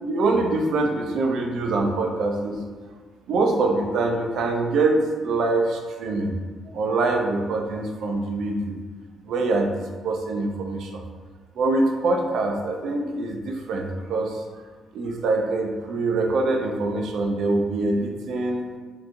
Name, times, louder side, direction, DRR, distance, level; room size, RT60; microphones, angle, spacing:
voice 1, 0.0-2.6 3.3-6.3 6.7-8.7 9.3-11.0 11.6-14.4 14.9-18.7, right 2 dB, 75° right, 3 dB, 0.4 m, -24 dB
3.5 x 2.9 x 2.5 m, 1.5 s
cardioid pair, 90°, 0 cm